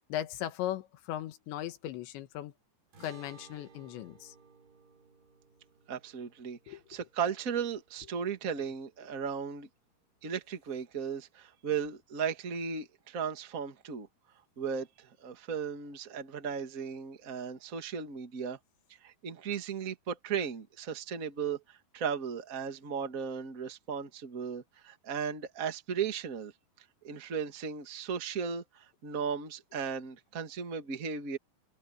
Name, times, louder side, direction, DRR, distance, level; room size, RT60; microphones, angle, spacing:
voice 1, 0.0-2.5 3.0-4.4 6.7-6.8, left 12 dB, 85° left, 3.8 m, -38 dB
sound 1, 2.9-9.5, right 5 dB, 65° right, 9.3 m, -59 dB
voice 2, 5.9-9.7 10.2-14.1 14.6-18.6 19.0-26.5 27.0-31.4, right 6 dB, 50° right, 0.9 m, -36 dB
omnidirectional pair, 5.1 m